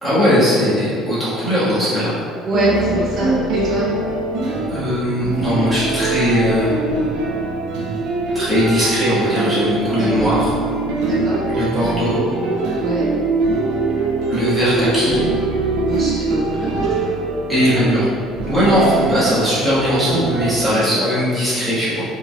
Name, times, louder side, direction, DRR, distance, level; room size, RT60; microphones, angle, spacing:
voice 1, 0.0-2.1 4.7-6.8 8.3-10.5 11.5-12.2 14.3-15.2 17.5-18.0 18.5-22.0, equal, 5° right, -12 dB, 1.5 m, -19 dB
voice 2, 2.4-3.9 10.0-10.3 11.0-11.4 12.8-13.0 15.8-17.1 17.6-17.9 20.6-21.1, right 1 dB, 35° right, -11 dB, 1.5 m, -24 dB
sound 1, 2.5-20.5, right 3 dB, 80° right, 0.6 m, -22 dB
4.9 x 3.3 x 2.3 m, 2.3 s
cardioid pair, 175°, 0 cm